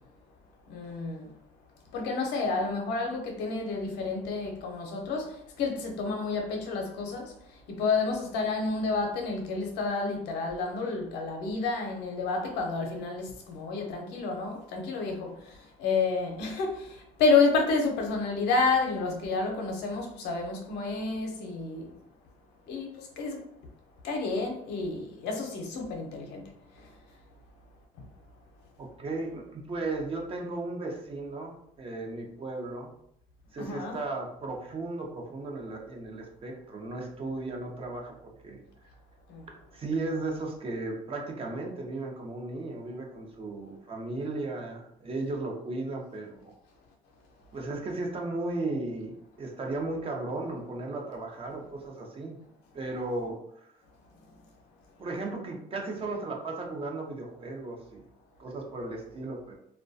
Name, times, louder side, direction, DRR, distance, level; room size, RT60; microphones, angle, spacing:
voice 1, 0.7-1.3 1.9-5.3 5.6-7.3 7.8-15.3 15.8-16.8 17.2-21.8 22.7-22.9 23.2-23.4 24.0-26.4 33.6-34.0 39.3-39.4, left 4 dB, 85° left, 0.6 m, -29 dB
voice 2, 28.8-32.9 33.5-38.6 39.7-46.5 47.5-52.4 52.7-53.7 55.0-58.0 58.4-59.5, right 2 dB, 35° right, 0.6 m, -35 dB
2.2 x 2.2 x 2.5 m
cardioid pair, 110°, 17 cm